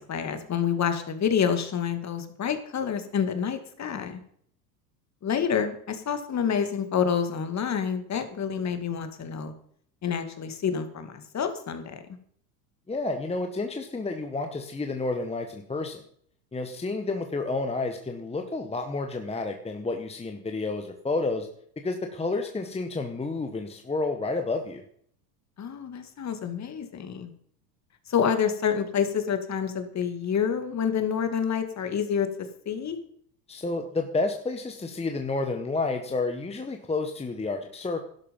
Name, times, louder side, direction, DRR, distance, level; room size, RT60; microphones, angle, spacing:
voice 1, 0.0-4.2 5.2-9.5 10.0-12.0 25.6-27.3 28.1-32.3 32.7-33.0, left 7 dB, 35° left, 8 dB, 2.3 m, -28 dB
voice 2, 12.9-16.0 16.5-21.5 21.8-24.8 33.5-38.1, left 3 dB, 10° left, 5 dB, 1.4 m, -30 dB
12.0 x 11.5 x 5.4 m, 0.63 s
hypercardioid pair, 95°, 49 cm